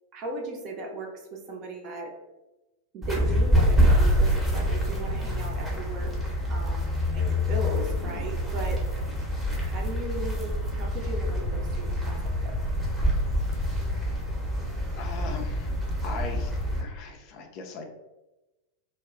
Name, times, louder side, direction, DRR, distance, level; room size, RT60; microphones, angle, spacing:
voice 1, 0.1-2.1 2.9-8.8 9.6-12.2 12.4-12.6, right 1 dB, 40° right, 1 dB, 0.6 m, -37 dB
sound 1, 3.0-16.8, equal, 5° right, 0.8 m, -26 dB
voice 2, 7.9-8.3 15.0-15.7 16.0-17.9, left 3 dB, 40° left, 3 dB, 0.4 m, -39 dB
2.3 x 2.1 x 3.6 m, 1.0 s
figure-of-eight pair, 90°, 0 cm